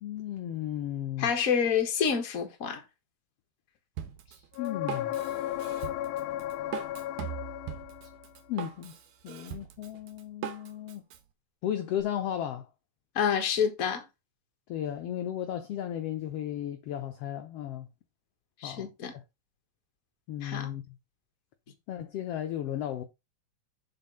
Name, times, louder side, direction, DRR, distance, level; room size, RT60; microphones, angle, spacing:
voice 1, 0.0-1.3 4.3-5.2 8.5-9.0 9.2-11.0 11.6-12.7 14.7-17.9 18.6-19.2 20.3-21.0 21.9-23.0, left 11 dB, 70° left, 1.6 m, -35 dB
voice 2, 1.2-2.8 13.1-14.0 18.6-19.1 20.4-20.7, left 7 dB, 35° left, 1.5 m, -28 dB
Drum kit, 4.0-11.2, right 10 dB, 75° right, 2.4 m, -40 dB
sound 1, 4.6-8.3 12.0-12.1, left 12 dB, 90° left, 2.1 m, -35 dB
7.3 x 5.0 x 5.5 m
omnidirectional pair, 3.5 m